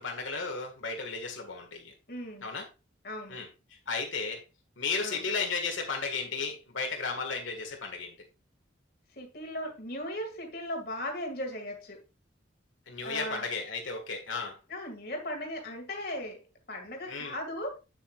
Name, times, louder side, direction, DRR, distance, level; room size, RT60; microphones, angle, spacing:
voice 1, 0.0-1.9 2.4-2.7 3.3-3.5 3.9-4.4 4.8-8.2 12.9-14.6 17.1-17.3, left 4 dB, 85° left, 1.8 m, -34 dB
voice 2, 2.1-2.5 3.0-3.4 5.0-5.2 9.1-12.0 13.0-13.5 14.7-16.4 16.7-17.8, left 1 dB, 50° left, 2.1 m, -37 dB
8.4 x 7.6 x 2.4 m
head